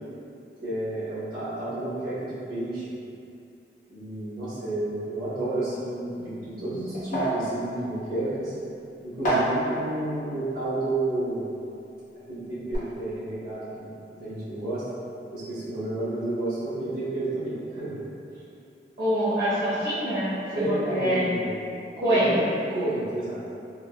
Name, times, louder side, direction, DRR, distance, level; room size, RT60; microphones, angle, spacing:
voice 1, 0.6-2.9 3.9-8.5 9.0-11.5 12.3-13.9 14.2-14.8 15.3-18.0 20.5-21.6 22.0-22.4 22.7-23.4, right 2 dB, 60° right, -13 dB, 1.3 m, -31 dB
sound 1, 6.1-12.2 12.5-12.8, right 1 dB, 45° left, 0.8 m, -32 dB
voice 2, 19.0-21.3 22.0-22.5, equal, 80° right, -14 dB, 1.1 m, -25 dB
3.6 x 2.2 x 2.5 m, 2.6 s
head